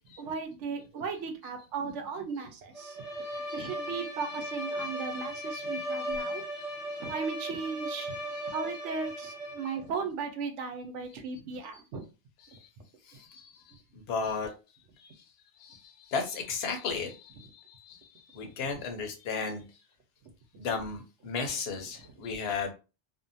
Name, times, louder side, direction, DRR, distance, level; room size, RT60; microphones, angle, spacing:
voice 1, 0.2-3.0 3.5-6.4 7.0-8.2 8.5-12.0 18.4-18.5 20.5-20.6, right 5 dB, 85° right, 6 dB, 1.0 m, -36 dB
Bowed string instrument, 2.7-9.8, equal, 35° left, 0.7 m, -37 dB
voice 2, 3.2-3.7 6.0-6.1 6.6-6.7 12.4-12.7 13.0-14.5 15.0-15.3 15.6-19.6 20.6-22.7, left 5 dB, 65° left, 4 dB, 0.9 m, -35 dB
2.6 x 2.2 x 2.6 m, 0.31 s
omnidirectional pair, 1.2 m